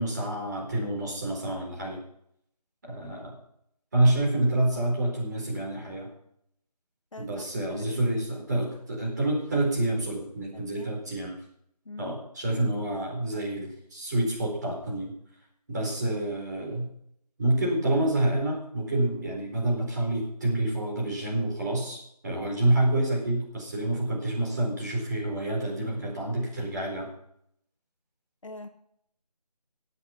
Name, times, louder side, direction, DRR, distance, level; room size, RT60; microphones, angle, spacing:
voice 1, 0.0-2.0 2.9-3.3 3.9-6.1 7.2-11.4 12.0-15.1 15.7-16.9 17.4-27.1, right 1 dB, 25° right, -2 dB, 4.1 m, -28 dB
voice 2, 7.1-8.1 10.5-10.9 11.8-12.1 28.4-28.7, left 2 dB, 50° left, 5 dB, 1.4 m, -44 dB
17.5 x 8.1 x 5.8 m, 0.72 s
figure-of-eight pair, 170°, 21 cm